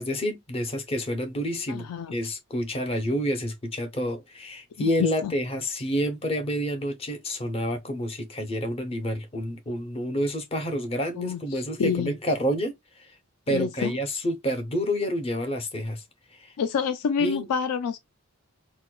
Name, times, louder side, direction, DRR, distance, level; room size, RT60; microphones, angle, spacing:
voice 1, 0.0-1.8 2.1-13.1 13.5-16.0 16.4-16.5 17.2-17.5, equal, 25° left, 0.6 m, -29 dB
voice 2, 1.7-2.1 4.8-5.3 11.1-12.1 13.5-13.9 16.6-18.0, left 6 dB, 85° left, 0.4 m, -28 dB
4.4 x 2.1 x 2.3 m
head